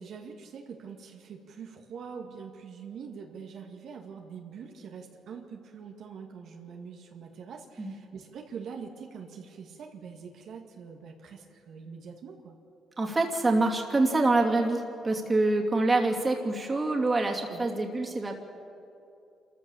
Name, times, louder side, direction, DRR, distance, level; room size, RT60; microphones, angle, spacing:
voice 1, 0.0-12.5 17.5-17.7, right 6 dB, 70° right, 2 dB, 1.9 m, -44 dB
voice 2, 13.0-18.4, right 2 dB, 25° right, 1 dB, 2.7 m, -26 dB
28.0 x 14.5 x 7.1 m, 2.7 s
cardioid pair, 90°, 0 cm